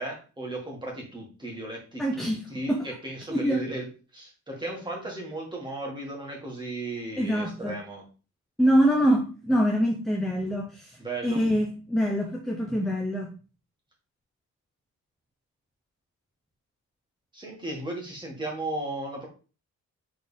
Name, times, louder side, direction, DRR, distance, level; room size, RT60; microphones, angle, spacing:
voice 1, 0.0-8.0 11.0-11.4 17.3-19.3, right 2 dB, 15° right, -1 dB, 2.1 m, -36 dB
voice 2, 2.0-2.9 3.3-3.6 7.2-7.8 8.6-10.9 11.2-13.3, equal, ahead, 0 dB, 0.8 m, -25 dB
6.5 x 4.1 x 3.5 m, 0.35 s
wide cardioid pair, 150°, 30 cm